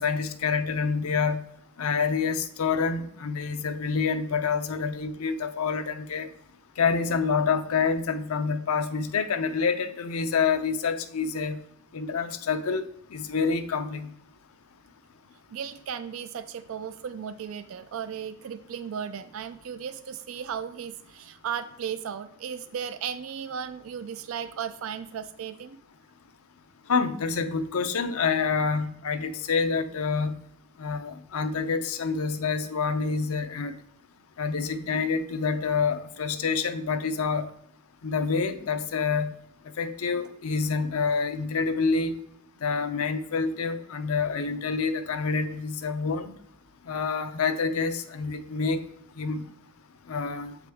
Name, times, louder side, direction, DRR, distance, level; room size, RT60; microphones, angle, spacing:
voice 1, 0.0-1.5 1.8-6.3 6.8-11.6 11.9-12.8 13.1-14.1 26.9-30.4 30.8-33.7 34.4-37.5 38.0-39.3 39.8-42.1 42.6-46.2 46.9-48.8 49.2-49.5 50.1-50.5, left 5 dB, 85° left, 9 dB, 0.6 m, -27 dB
voice 2, 15.5-25.8, right 7 dB, 70° right, 12 dB, 0.4 m, -35 dB
7.6 x 4.8 x 3.5 m, 0.72 s
head